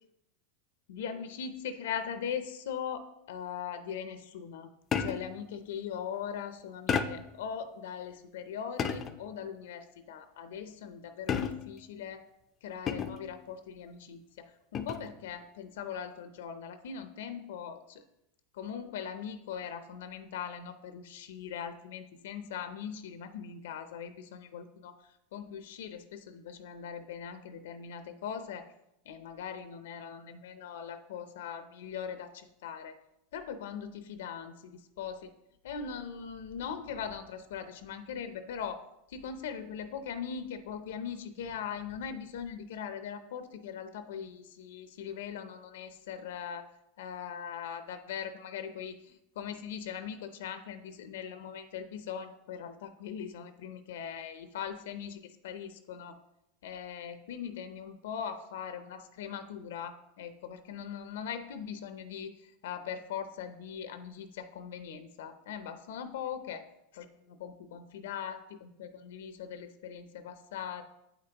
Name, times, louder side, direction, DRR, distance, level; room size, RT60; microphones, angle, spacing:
voice 1, 0.9-4.7 5.0-12.2 12.6-18.0 18.5-25.0 25.3-28.7 29.1-32.9 33.3-35.3 35.6-46.7 47.0-56.2 56.6-66.6 66.9-70.8, left 7 dB, 80° left, 10 dB, 0.5 m, -40 dB
sound 1, 4.9-5.4 6.9-7.4 8.8-9.3 11.3-11.8 12.9-13.3 14.7-15.1, left 6 dB, 30° left, 0.5 m, -32 dB
8.6 x 5.1 x 2.9 m, 0.83 s
supercardioid pair, 125°, 0 cm